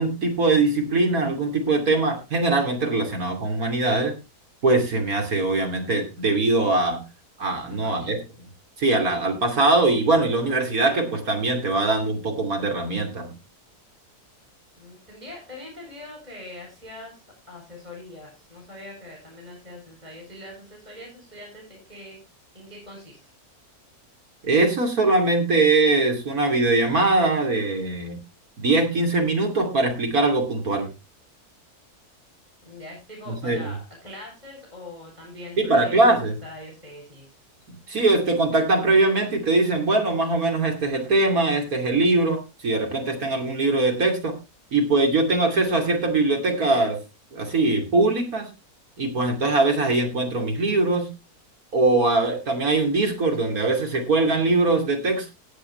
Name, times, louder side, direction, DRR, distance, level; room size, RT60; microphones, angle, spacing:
voice 1, 0.0-4.1 4.6-7.0 7.4-8.2 8.8-13.3 24.4-28.2 28.6-30.9 33.3-33.7 35.6-36.3 37.7-44.3 44.7-47.0 47.3-48.5 49.0-51.1 51.7-55.3, right 2 dB, 65° right, 3 dB, 3.2 m, -22 dB
voice 2, 14.8-22.2 22.5-23.3 32.6-37.3, left 2 dB, 25° right, -1 dB, 7.3 m, -42 dB
16.5 x 8.4 x 3.2 m, 0.27 s
omnidirectional pair, 1.6 m